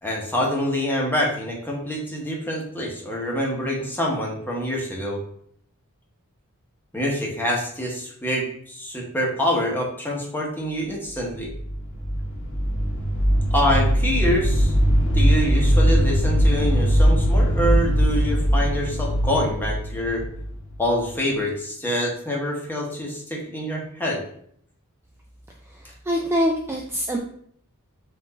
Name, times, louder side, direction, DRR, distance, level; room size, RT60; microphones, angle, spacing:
voice 1, 0.0-5.2 6.9-11.5 13.5-14.7 15.1-20.2 20.8-24.2, equal, 10° left, -2 dB, 1.0 m, -26 dB
sound 1, 11.3-21.1, equal, 60° left, 1.0 m, -20 dB
voice 2, 25.7-27.2, equal, 10° right, 0 dB, 0.3 m, -25 dB
4.4 x 2.6 x 3.9 m, 0.63 s
head